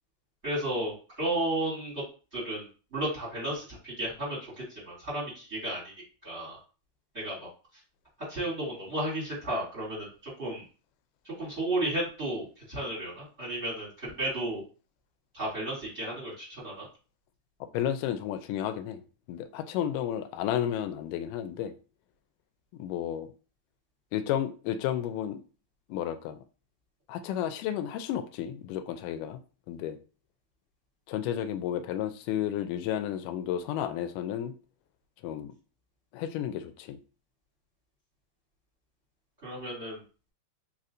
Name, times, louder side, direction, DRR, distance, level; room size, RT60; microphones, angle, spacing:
voice 1, 0.4-1.9 2.3-5.9 6.2-6.6 7.1-7.5 8.3-10.1 10.4-10.6 11.2-14.6 15.3-16.8 39.4-40.0, right 1 dB, 20° right, 2.4 m, -33 dB
voice 2, 17.7-21.7 22.8-23.3 24.1-25.4 25.9-26.4 27.1-29.4 29.7-30.0 31.1-34.5 35.2-35.5 36.1-37.0, left 10 dB, 90° left, 2.1 m, -32 dB
4.7 x 4.1 x 2.5 m
omnidirectional pair, 3.6 m